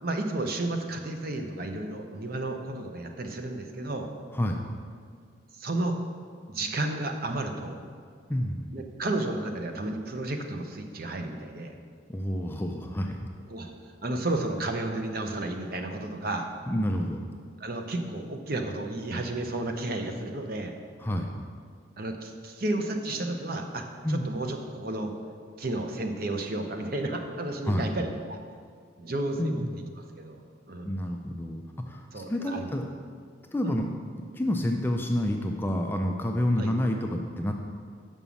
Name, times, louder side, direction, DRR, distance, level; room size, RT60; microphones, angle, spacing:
voice 1, 0.0-4.1 5.6-6.0 6.5-7.8 8.7-11.7 13.5-16.5 17.6-20.7 22.0-25.1 25.6-28.4 29.0-29.6 30.2-30.4 30.7-30.9 32.1-32.7 33.6-33.8 36.6-36.7, right 2 dB, 45° right, 4 dB, 0.7 m, -32 dB
voice 2, 8.3-8.7 12.1-13.3 16.7-17.2 21.0-21.3 24.0-24.2 27.7-27.9 29.4-29.8 30.8-32.8 33.5-33.9 34.3-37.5, left 1 dB, 10° left, 3 dB, 0.4 m, -29 dB
6.1 x 5.5 x 7.0 m, 2.1 s
head